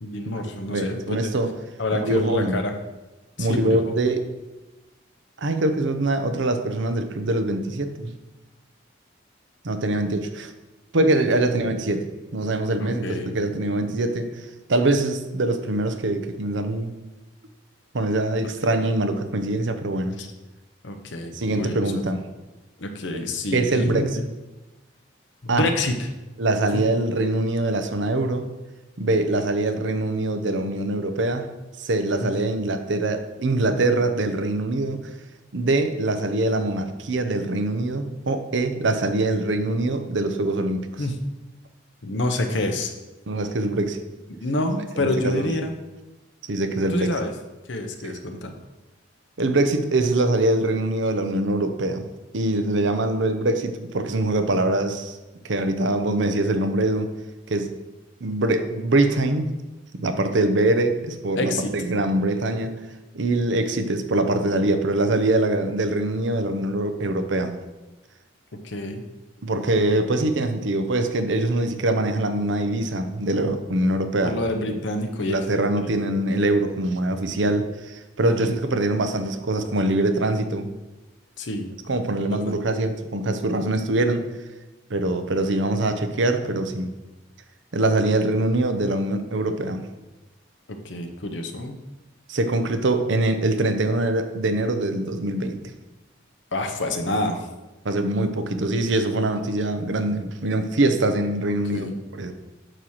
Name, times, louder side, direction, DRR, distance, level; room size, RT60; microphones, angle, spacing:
voice 1, 0.0-1.3 1.8-2.8 3.4-3.9 12.8-13.3 18.6-18.7 20.2-20.3 20.8-22.0 22.8-24.2 25.4-26.1 26.7-26.8 32.2-32.3 41.0-41.2 42.0-42.9 44.4-45.7 46.9-47.3 47.7-48.5 61.4-61.7 68.6-69.0 74.2-75.9 78.2-78.6 81.4-81.7 82.3-82.5 90.7-91.8 96.5-97.5 101.7-101.9, left 1 dB, 70° left, 5 dB, 0.9 m, -28 dB
voice 2, 0.7-1.5 2.0-2.6 3.4-4.3 5.4-8.1 9.6-10.5 10.9-17.0 17.9-20.2 21.3-22.2 23.5-24.1 25.5-25.7 26.4-28.4 29.0-31.5 31.8-35.0 35.5-41.0 43.3-44.0 45.0-45.5 46.5-47.1 48.0-48.2 49.4-52.1 52.3-55.2 55.4-57.1 57.5-57.7 58.2-59.5 59.9-62.8 63.1-67.6 69.4-74.4 74.7-74.8 75.2-80.7 81.9-84.2 84.9-86.9 87.7-89.9 92.3-95.6 97.8-102.3, right 2 dB, 70° right, 7 dB, 0.7 m, -23 dB
9.0 x 3.0 x 6.4 m, 1.1 s
head